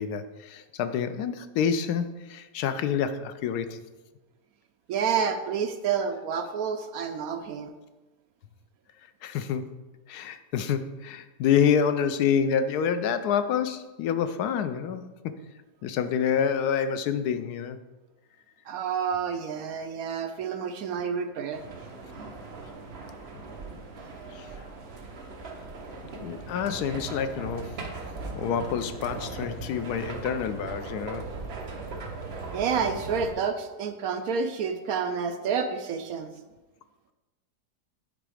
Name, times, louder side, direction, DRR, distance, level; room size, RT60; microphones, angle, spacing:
voice 1, 0.0-3.8 9.2-9.6 10.1-15.0 15.8-17.8 24.3-24.5 26.2-27.8 28.4-31.3, left 7 dB, 75° left, 10 dB, 1.1 m, -27 dB
voice 2, 4.9-7.7 18.7-21.6 32.5-36.3, right 6 dB, 70° right, 8 dB, 0.9 m, -29 dB
sound 1, 21.5-33.3, right 3 dB, 45° right, 1.0 m, -39 dB
8.8 x 4.6 x 4.9 m, 1.1 s
omnidirectional pair, 1.7 m